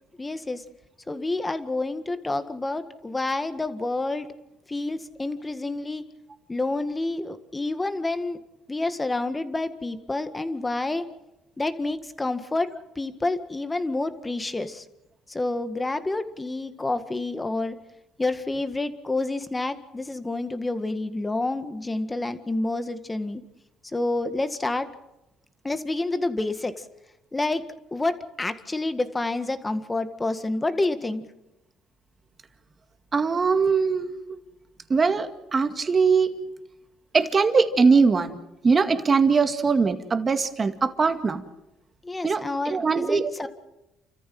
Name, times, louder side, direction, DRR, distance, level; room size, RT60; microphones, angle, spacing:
voice 1, 0.2-0.6 1.1-4.3 4.7-6.0 6.5-8.4 8.7-11.0 11.6-12.7 13.0-14.8 15.3-17.8 18.2-23.4 23.9-24.9 25.6-26.7 27.3-27.6 27.9-31.2 42.0-43.5, left 2 dB, 15° left, 9 dB, 1.8 m, -28 dB
voice 2, 33.1-34.2 34.9-36.4 37.1-38.4 38.6-41.4 42.2-43.5, right 5 dB, 30° right, 8 dB, 2.1 m, -21 dB
29.5 x 14.0 x 7.8 m, 0.92 s
cardioid pair, 100°, 0 cm